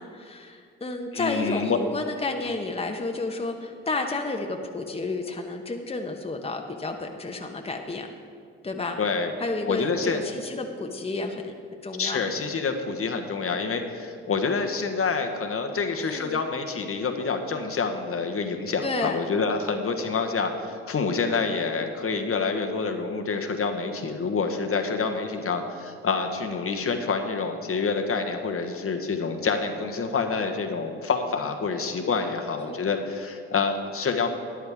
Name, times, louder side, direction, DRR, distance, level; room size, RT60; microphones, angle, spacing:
voice 1, 0.0-8.1 8.6-9.0 9.4-11.5 11.8-12.2 16.0-16.4 18.8-19.2 32.6-32.9, left 3 dB, 15° left, 3 dB, 1.1 m, -31 dB
voice 2, 1.1-1.8 9.0-9.3 9.7-10.2 12.0-34.3, left 4 dB, 40° left, 4 dB, 1.2 m, -27 dB
13.0 x 10.5 x 3.6 m, 2.2 s
hypercardioid pair, 45°, 33 cm